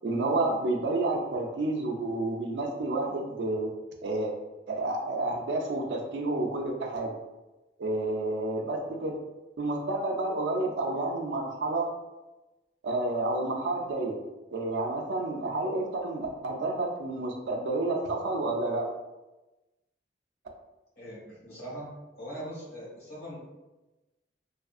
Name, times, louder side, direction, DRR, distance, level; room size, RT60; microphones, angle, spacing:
voice 1, 0.0-3.7 4.0-4.3 4.7-7.1 7.8-9.2 9.6-11.9 12.8-14.2 14.5-18.9, right 2 dB, 90° right, 1 dB, 0.4 m, -30 dB
voice 2, 21.0-21.8 22.2-23.4, equal, 75° left, -8 dB, 1.4 m, -41 dB
2.7 x 2.4 x 2.4 m, 1.1 s
head